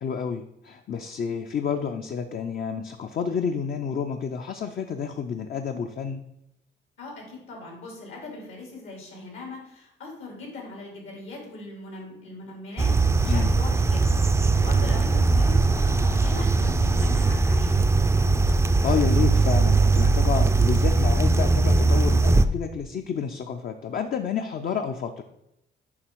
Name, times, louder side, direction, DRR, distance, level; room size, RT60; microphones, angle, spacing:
voice 1, 0.0-6.2 13.2-13.5 18.8-25.2, left 6 dB, 50° left, 6 dB, 0.5 m, -29 dB
voice 2, 7.0-14.0 14.5-17.7, left 3 dB, 80° left, -1 dB, 3.1 m, -40 dB
sound 1, 12.8-22.4, right 3 dB, 15° right, 0.4 m, -20 dB
7.3 x 5.0 x 4.6 m, 0.83 s
cardioid pair, 90°, 20 cm